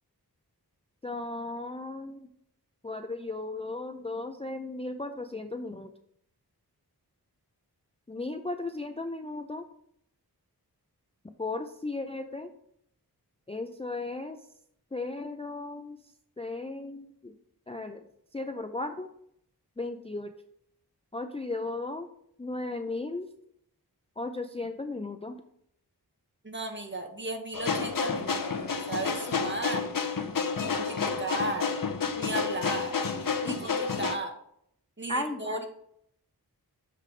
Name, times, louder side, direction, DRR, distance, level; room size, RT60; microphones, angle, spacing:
voice 1, 1.0-2.2 2.8-5.9 8.1-9.6 11.4-12.5 13.5-14.4 14.9-16.0 16.4-17.3 17.7-18.0 18.3-19.1 19.8-20.3 21.1-22.1 22.4-23.3 24.2-25.4 33.4-33.6 35.1-35.6, left 2 dB, 15° left, 6 dB, 0.5 m, -35 dB
voice 2, 26.4-29.9 30.6-31.6 32.1-32.9 33.4-34.3 35.0-35.7, right 2 dB, 30° right, 3 dB, 1.2 m, -35 dB
sound 1, 27.5-34.2, left 5 dB, 55° left, 0.7 m, -30 dB
7.5 x 3.3 x 4.9 m, 0.71 s
wide cardioid pair, 40°, 39 cm